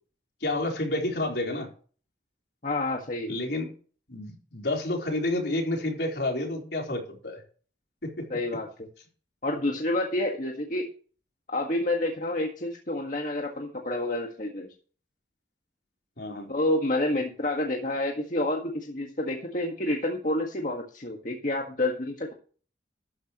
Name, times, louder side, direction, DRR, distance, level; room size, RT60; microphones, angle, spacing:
voice 1, 0.4-1.7 3.3-3.7 4.1-7.4 8.0-8.3 16.2-16.5, left 2 dB, 70° left, 1 dB, 4.0 m, -29 dB
voice 2, 2.6-3.3 8.3-8.9 9.4-10.9 11.5-14.7 16.5-22.3, left 1 dB, 45° left, 1 dB, 1.7 m, -29 dB
13.0 x 10.5 x 3.1 m, 0.40 s
head